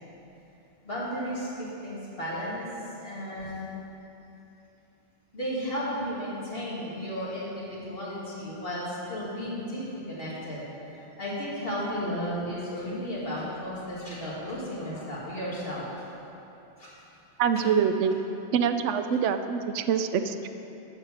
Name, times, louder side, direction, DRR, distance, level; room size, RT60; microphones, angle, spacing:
voice 1, 0.8-2.7 3.0-3.7 5.3-15.8 16.8-16.9, equal, 55° left, -7 dB, 2.6 m, -34 dB
voice 2, 17.4-18.2 18.5-20.5, right 7 dB, 90° right, 9 dB, 0.9 m, -25 dB
12.0 x 4.8 x 7.4 m, 2.9 s
omnidirectional pair, 1.2 m